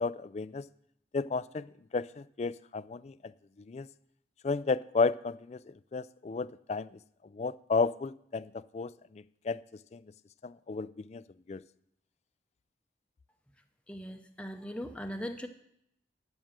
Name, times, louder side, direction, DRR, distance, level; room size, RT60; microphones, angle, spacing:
voice 1, 0.0-0.6 1.1-3.1 3.7-3.9 4.4-5.6 5.9-6.9 7.3-9.6 9.9-10.0 10.4-11.2 11.5-11.6, left 4 dB, 35° left, 16 dB, 0.3 m, -33 dB
voice 2, 13.9-15.5, equal, 5° left, 5 dB, 0.7 m, -39 dB
12.5 x 6.1 x 7.4 m, 0.72 s
head